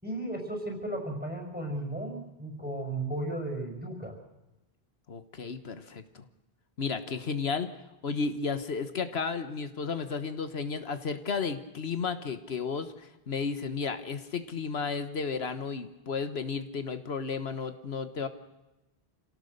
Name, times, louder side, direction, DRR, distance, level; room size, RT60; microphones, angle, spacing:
voice 1, 0.0-4.2, right 1 dB, 10° right, 3 dB, 5.5 m, -35 dB
voice 2, 5.1-6.2 6.8-7.7 8.0-18.3, left 5 dB, 80° left, 9 dB, 1.5 m, -33 dB
27.5 x 17.5 x 6.7 m, 0.99 s
omnidirectional pair, 1.0 m